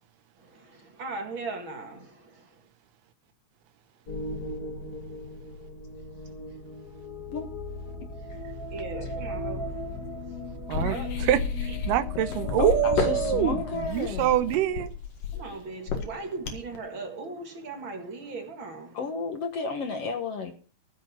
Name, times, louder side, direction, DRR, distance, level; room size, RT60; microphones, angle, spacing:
voice 1, 0.4-2.6 6.5-6.6 8.7-9.7 10.9-11.2 11.7-11.8 15.3-19.0, right 3 dB, 40° right, 2.4 m, -38 dB
sound 1, 4.1-14.9, left 2 dB, 40° left, 1.6 m, -36 dB
sound 2, 10.7-16.8, left 6 dB, 90° left, 3.4 m, -32 dB
voice 2, 10.7-11.4 11.9-13.6 13.9-14.9, right 12 dB, 80° right, 2.3 m, -25 dB
voice 3, 12.6-14.3 18.9-20.5, left 4 dB, 60° left, 2.0 m, -32 dB
14.5 x 6.7 x 6.4 m
omnidirectional pair, 3.8 m